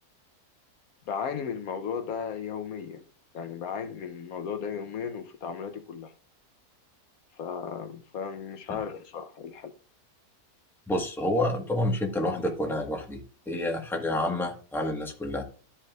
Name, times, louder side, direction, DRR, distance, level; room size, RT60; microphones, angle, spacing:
voice 1, 1.1-3.0 3.3-6.1 7.4-9.7, left 7 dB, 70° left, 1.1 m, -35 dB
voice 2, 10.9-13.2 13.5-15.4, left 1 dB, ahead, 1.2 m, -28 dB
13.0 x 5.6 x 2.4 m
omnidirectional pair, 1.7 m